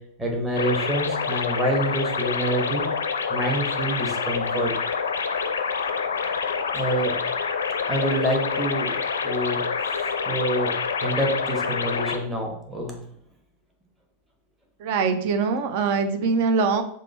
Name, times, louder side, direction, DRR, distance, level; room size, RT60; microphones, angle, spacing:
voice 1, 0.2-2.9 3.3-4.7 6.7-7.2 7.9-8.9 9.2-10.7 11.0-12.9, right 1 dB, 15° right, 0 dB, 1.1 m, -27 dB
sound 1, 0.6-12.2, left 5 dB, 70° left, 0.4 m, -27 dB
voice 2, 14.8-16.8, right 5 dB, 50° right, 9 dB, 0.5 m, -23 dB
5.0 x 2.2 x 4.2 m, 0.66 s
figure-of-eight pair, 90°, 0 cm